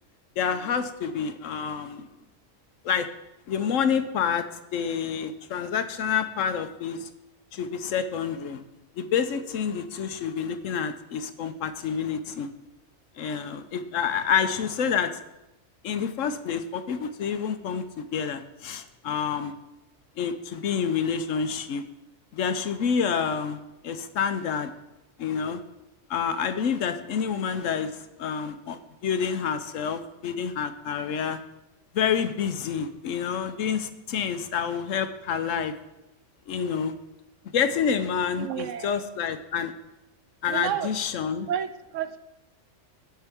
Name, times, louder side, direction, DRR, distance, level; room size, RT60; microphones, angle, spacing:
voice 1, 0.4-2.1 2.8-3.1 3.5-4.4 4.7-7.1 7.5-8.6 9.0-12.5 13.2-15.1 15.8-19.5 20.2-21.8 22.3-24.7 25.2-25.6 26.1-31.4 31.9-35.7 36.5-36.9 37.5-39.7 40.4-41.5, left 7 dB, 85° left, 10 dB, 1.1 m, -28 dB
voice 2, 38.4-39.0 40.5-40.9 41.5-42.2, right 9 dB, 80° right, 12 dB, 1.0 m, -31 dB
16.5 x 5.6 x 3.5 m, 0.94 s
omnidirectional pair, 1.3 m